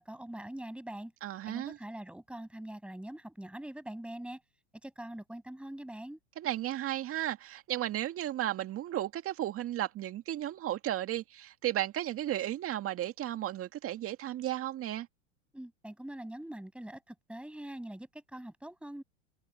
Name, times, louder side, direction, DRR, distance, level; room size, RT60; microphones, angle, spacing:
voice 1, 0.0-1.1 1.4-4.4 4.8-6.2 15.5-19.0, right 1 dB, 5° right, 6.6 m, -43 dB
voice 2, 1.2-1.8 6.4-15.1, right 13 dB, 35° right, 2.1 m, -34 dB
hypercardioid pair, 95°, 37 cm